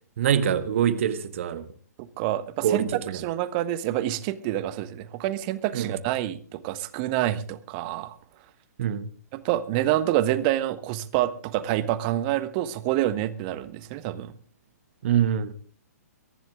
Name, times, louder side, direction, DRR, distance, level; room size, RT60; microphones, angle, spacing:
voice 1, 0.2-1.7 2.6-3.2 5.7-5.9 8.8-9.1 15.0-15.5, right 9 dB, 50° right, 1.5 m, -24 dB
voice 2, 2.0-2.9 3.1-8.2 9.3-14.3, right 13 dB, 30° right, 1.3 m, -27 dB
23.0 x 10.5 x 3.7 m
figure-of-eight pair, 125°, 9 cm